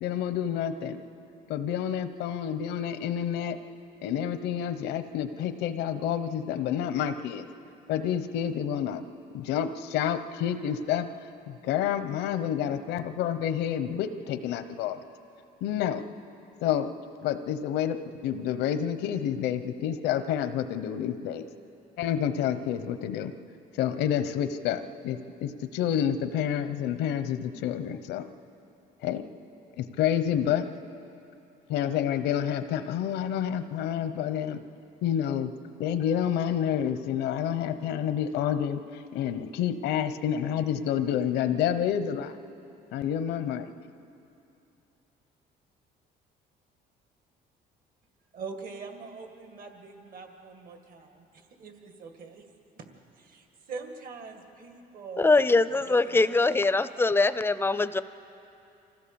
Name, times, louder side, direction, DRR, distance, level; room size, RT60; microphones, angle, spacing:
voice 1, 0.0-1.0 1.5-3.6 4.0-7.5 7.9-9.0 9.3-15.0 15.6-16.0 16.6-16.9 17.2-21.5 22.0-23.3 23.7-28.3 29.0-29.2 29.8-30.7 31.7-34.6 35.0-35.5 35.8-42.3 42.9-43.7, left 9 dB, 90° left, 11 dB, 1.0 m, -29 dB
voice 2, 48.3-52.4 52.8-52.9 53.2-55.4 55.9-56.4, right 5 dB, 55° right, 5 dB, 2.1 m, -43 dB
voice 3, 55.2-58.0, left 3 dB, 15° left, 14 dB, 0.6 m, -23 dB
25.5 x 15.5 x 7.1 m, 2.7 s
cardioid pair, 110°, 17 cm